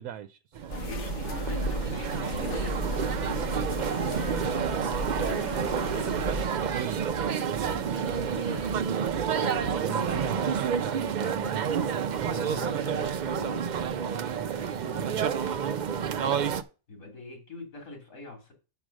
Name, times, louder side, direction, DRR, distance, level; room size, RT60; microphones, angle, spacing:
voice 1, 0.0-0.8 6.5-8.2 8.5-8.6 9.7-12.9 14.0-15.6, right 10 dB, 80° right, 1.0 m, -39 dB
sound 1, 0.6-16.6, right 7 dB, 65° right, 0.4 m, -29 dB
voice 2, 0.7-5.7 7.6-8.7 9.3-10.3 12.2-15.1 16.9-18.5, left 2 dB, 75° left, 3.0 m, -42 dB
sound 2, 0.7-6.5, equal, 60° left, 1.2 m, -34 dB
sound 3, 2.6-10.6, right 2 dB, 50° right, 0.8 m, -45 dB
6.1 x 6.0 x 6.3 m
omnidirectional pair, 1.5 m